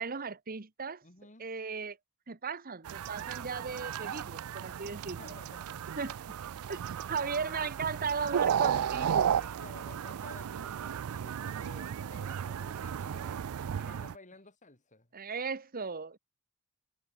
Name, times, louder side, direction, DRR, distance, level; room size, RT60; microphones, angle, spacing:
voice 1, 0.0-1.0 1.4-2.0 2.3-5.4 6.0-6.4 6.7-6.8 7.1-9.3 15.1-16.2, right 5 dB, 40° right, 1.1 m, -36 dB
voice 2, 1.0-1.5 5.1-5.9 7.1-7.6 9.0-15.1, left 3 dB, 35° left, 4.6 m, -54 dB
sound 1, 2.9-14.1, right 8 dB, 80° right, 0.4 m, -34 dB
head